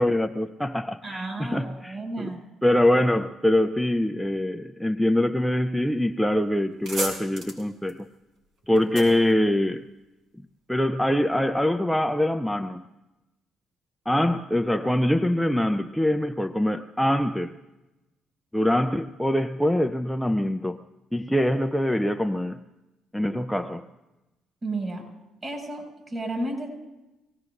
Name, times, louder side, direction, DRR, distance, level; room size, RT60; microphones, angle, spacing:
voice 1, 0.0-2.3 2.6-8.1 8.7-9.9 10.7-12.8 14.1-17.6 18.5-20.8 21.1-22.6 23.1-23.9, left 1 dB, 5° left, 6 dB, 0.5 m, -24 dB
voice 2, 1.0-2.4 8.9-9.0 24.6-25.0 25.4-26.7, right 2 dB, 35° right, 0 dB, 6.4 m, -32 dB
sound 1, 6.1-6.3 6.6-10.2, right 1 dB, 75° right, 5.0 m, -36 dB
24.5 x 18.0 x 2.6 m, 1.0 s
supercardioid pair, 80°, 0 cm